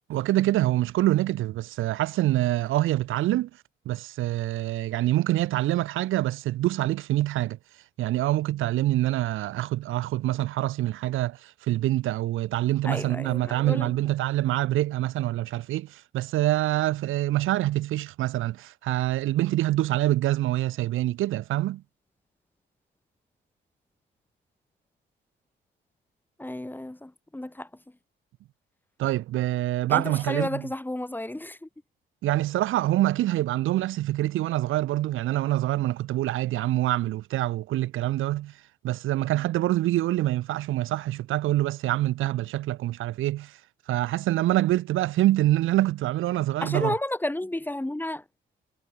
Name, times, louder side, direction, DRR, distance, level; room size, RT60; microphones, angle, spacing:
voice 1, 0.1-3.5 3.9-7.6 8.0-21.8 29.0-30.7 32.2-38.5 38.8-43.6 43.9-47.0, right 15 dB, 90° right, 7.6 m, -25 dB
voice 2, 12.8-13.9 26.4-27.7 29.9-31.7 46.6-48.2, left 1 dB, 10° left, 6.1 m, -32 dB
cardioid pair, 90°, 20 cm